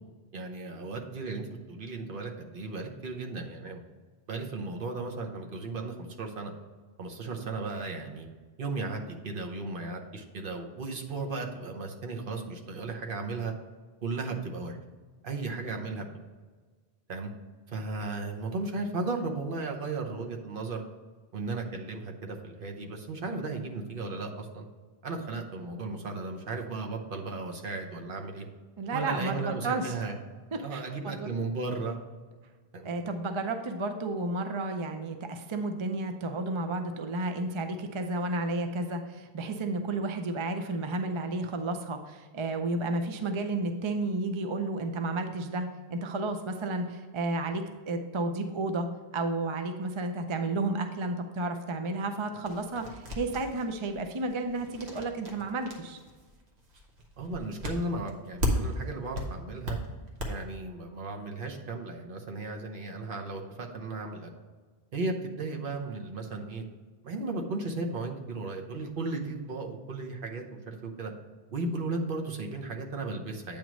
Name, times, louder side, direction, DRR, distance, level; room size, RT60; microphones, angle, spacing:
voice 1, 0.3-3.8 4.3-6.5 7.0-8.3 8.6-13.5 14.0-14.8 15.2-16.0 17.1-17.3 17.7-20.8 21.3-24.6 25.0-28.4 28.9-30.2 30.5-32.0 32.7-32.9 57.2-59.8 60.3-64.3 64.9-66.6 67.0-71.1 71.5-73.6, right 3 dB, 60° right, 2 dB, 1.0 m, -35 dB
voice 2, 28.8-29.9 30.5-31.3 32.8-48.9 49.1-56.0, right 2 dB, 40° right, 6 dB, 0.4 m, -32 dB
sound 1, 52.4-58.8 59.1-60.3, left 1 dB, 85° right, 1.4 m, -35 dB
8.6 x 3.0 x 6.1 m, 1.4 s
omnidirectional pair, 1.1 m